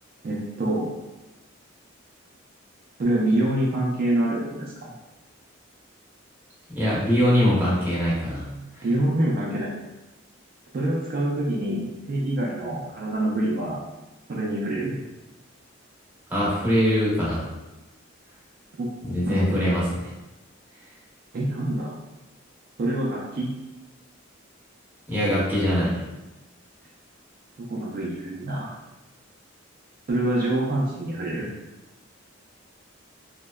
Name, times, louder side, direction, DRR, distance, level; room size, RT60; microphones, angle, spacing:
voice 1, 0.2-0.9 3.0-4.9 8.8-9.7 10.7-13.8 14.3-15.0 18.8-18.9 19.2-19.6 21.3-21.9 22.8-23.5 27.6-28.8 30.1-31.5, right 1 dB, 45° right, -4 dB, 0.4 m, -26 dB
voice 2, 6.7-8.5 8.8-8.9 16.3-17.5 19.0-20.1 25.1-26.0, equal, 10° right, -8 dB, 0.8 m, -22 dB
2.7 x 2.1 x 2.3 m, 1.0 s
head